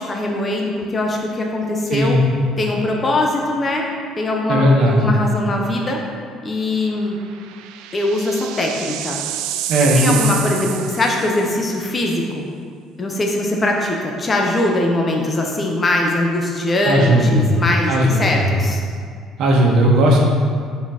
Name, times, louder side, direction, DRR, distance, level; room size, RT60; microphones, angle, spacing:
voice 1, 0.0-2.2 2.6-3.9 4.2-6.0 6.4-7.2 7.9-9.2 9.9-12.4 13.0-18.8, left 2 dB, 25° left, 0 dB, 0.7 m, -21 dB
voice 2, 4.5-5.0 9.7-10.3 16.8-17.5 17.9-18.4 19.4-20.2, equal, 70° right, -2 dB, 1.2 m, -16 dB
sound 1, 5.5-5.6 7.0-11.7, right 11 dB, 85° right, 0.3 m, -28 dB
5.9 x 4.2 x 4.9 m, 2.1 s
cardioid pair, 125°, 0 cm